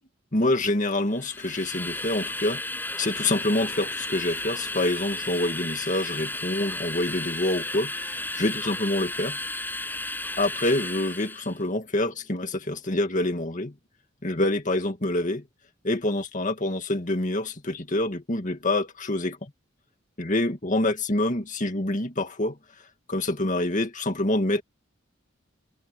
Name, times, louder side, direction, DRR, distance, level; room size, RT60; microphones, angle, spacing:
voice 1, 0.3-2.6 3.0-9.4 10.4-13.7 14.2-15.4 15.8-19.5 20.2-22.6 23.1-24.6, left 1 dB, 40° left, 2.1 m, -26 dB
Train, 1.1-11.6, left 2 dB, 10° left, 6.5 m, -33 dB
head